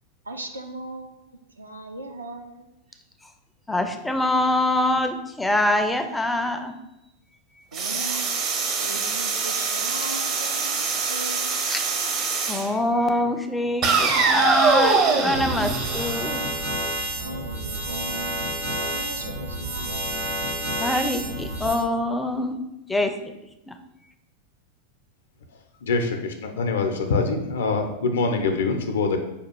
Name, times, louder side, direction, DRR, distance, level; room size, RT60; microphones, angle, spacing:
voice 1, 0.3-1.2 1.6-2.7 7.7-11.5 17.2-20.1, right 2 dB, 80° right, 3 dB, 0.5 m, -38 dB
voice 2, 3.7-6.8 11.7-11.8 12.5-16.4 20.8-22.6 22.9-23.3 23.7-23.8, left 1 dB, 5° left, 6 dB, 0.4 m, -24 dB
sound 1, 7.7-12.7 13.8-16.7, right 4 dB, 35° right, 0.6 m, -24 dB
sound 2, 15.3-21.8, right 1 dB, 60° right, 1.0 m, -30 dB
voice 3, 25.8-29.2, left 4 dB, 65° left, 5 dB, 0.6 m, -24 dB
5.1 x 2.3 x 4.5 m, 0.91 s
figure-of-eight pair, 90°, 0 cm